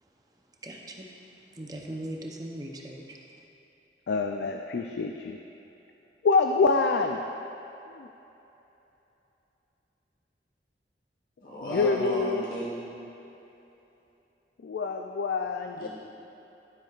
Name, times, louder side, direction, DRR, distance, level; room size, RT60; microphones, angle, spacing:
voice 1, 0.0-3.3, right 1 dB, 20° right, 0 dB, 0.6 m, -41 dB
voice 2, 4.1-5.4 6.2-7.2 7.9-8.1 11.6-12.5 14.6-15.9, left 4 dB, 70° left, 4 dB, 0.3 m, -26 dB
voice 3, 11.4-12.8 15.8-15.9, equal, 50° left, -5 dB, 1.2 m, -33 dB
12.0 x 7.5 x 2.4 m, 3.0 s
head